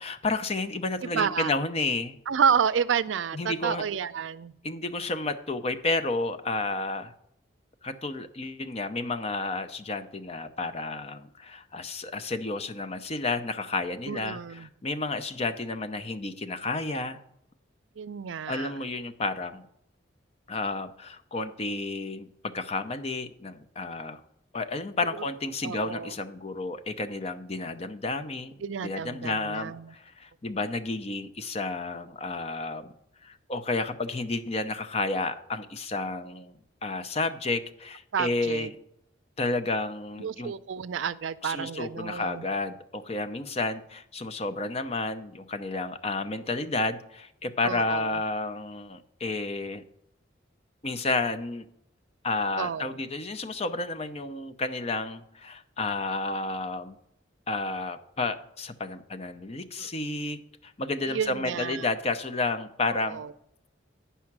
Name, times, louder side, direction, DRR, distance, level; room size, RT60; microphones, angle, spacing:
voice 1, 0.0-2.1 3.3-3.8 4.6-7.1 7.8-17.2 18.5-19.6 20.5-24.2 24.5-28.5 28.8-32.9 33.2-36.5 36.8-38.7 39.4-40.5 41.4-49.8 50.8-51.7 52.2-57.0 57.5-63.2, left 3 dB, 35° left, 9 dB, 0.6 m, -31 dB
voice 2, 1.0-1.5 2.3-4.5 14.1-14.7 18.0-18.8 25.6-26.1 28.6-29.9 38.1-38.7 40.2-42.4 47.6-48.2 52.6-53.0 59.8-59.9 61.1-61.9 63.0-63.3, right 7 dB, 80° right, 16 dB, 0.4 m, -30 dB
9.5 x 5.6 x 6.0 m, 0.76 s
head